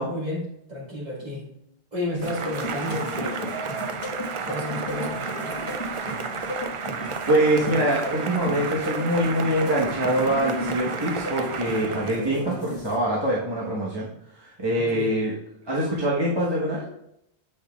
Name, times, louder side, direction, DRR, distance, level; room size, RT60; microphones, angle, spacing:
voice 1, 0.1-1.5 1.9-3.6 4.4-5.8 14.8-15.2, left 1 dB, 40° right, -5 dB, 2.0 m, -32 dB
sound 1, 2.1-13.0, left 1 dB, 25° left, 1.3 m, -35 dB
Cheering / Applause, 2.2-12.3, right 5 dB, 60° right, 0.3 m, -32 dB
voice 2, 7.3-14.1 14.4-15.3 15.7-16.8, right 1 dB, 25° right, -6 dB, 1.1 m, -24 dB
8.0 x 5.3 x 2.3 m, 0.77 s
omnidirectional pair, 1.1 m